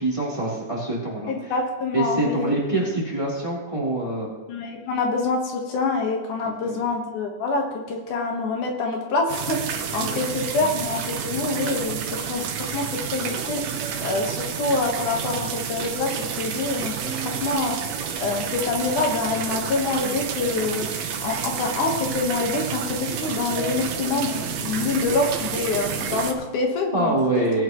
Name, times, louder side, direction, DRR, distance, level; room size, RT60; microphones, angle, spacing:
voice 1, 0.0-1.5 1.9-4.3 6.6-6.8 10.0-10.2 10.6-10.7 26.9-27.6, right 2 dB, 10° right, -6 dB, 3.1 m, -25 dB
voice 2, 1.3-2.5 4.5-12.0 12.2-12.8 13.1-13.6 14.0-16.9 17.2-17.7 18.2-20.9 21.2-27.5, left 3 dB, 75° left, 1 dB, 2.9 m, -26 dB
sound 1, 9.3-26.3, right 7 dB, 65° right, 2.0 m, -30 dB
19.0 x 9.2 x 3.1 m, 1.1 s
omnidirectional pair, 3.6 m